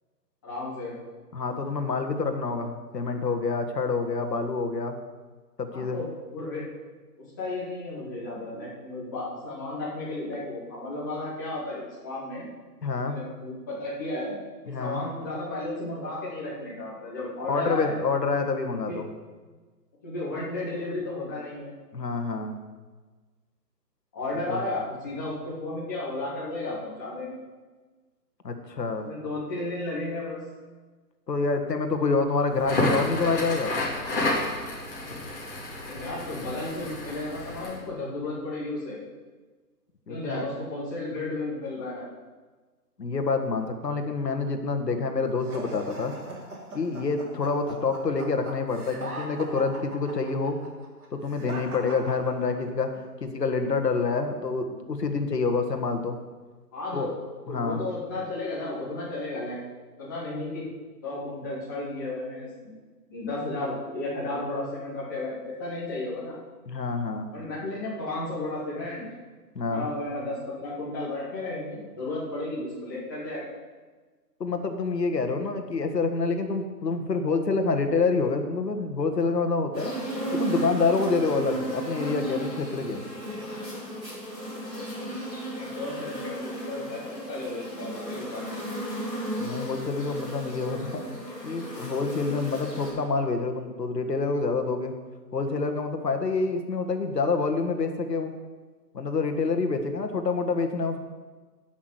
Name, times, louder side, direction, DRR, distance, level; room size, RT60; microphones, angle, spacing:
voice 1, 0.4-0.9 5.7-6.6 7.4-12.5 13.0-14.3 14.6-17.9 18.9-19.1 20.0-21.7 24.1-27.4 29.0-30.4 35.8-39.0 40.1-42.1 56.7-57.1 57.5-59.6 60.0-60.6 61.0-62.7 63.1-66.4 67.3-69.0 69.7-73.5 85.5-87.0 87.3-88.6, left 2 dB, 10° left, -8 dB, 1.8 m, -33 dB
voice 2, 1.3-5.0 5.6-6.0 12.8-13.2 14.7-15.0 17.5-19.1 21.9-22.6 24.5-24.6 28.4-29.1 31.3-33.8 40.1-40.4 43.0-46.1 46.7-50.6 51.1-56.2 56.9-57.1 57.5-57.8 66.7-67.3 69.6-69.9 74.4-79.9 80.3-83.0 89.4-91.0 91.4-94.9 95.3-98.3 98.9-101.0, left 4 dB, 75° left, 6 dB, 1.8 m, -27 dB
Crackle, 32.5-37.8, left 2 dB, 30° left, 2.8 m, -30 dB
sound 1, 45.4-52.8, right 2 dB, 60° right, 3.1 m, -40 dB
sound 2, 79.7-92.9, right 1 dB, 10° right, 4.5 m, -34 dB
11.0 x 6.3 x 7.8 m, 1.3 s
hypercardioid pair, 175°, 50 cm